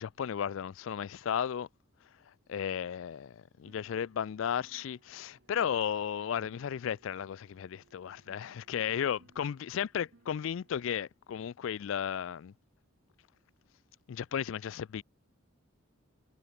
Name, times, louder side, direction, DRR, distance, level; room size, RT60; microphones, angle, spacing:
voice 1, 0.0-1.7 2.5-12.5 14.1-15.0, left 8 dB, 65° left, 0.3 m, -34 dB
sound 1, 3.6-11.0, right 3 dB, 55° right, 0.9 m, -65 dB
head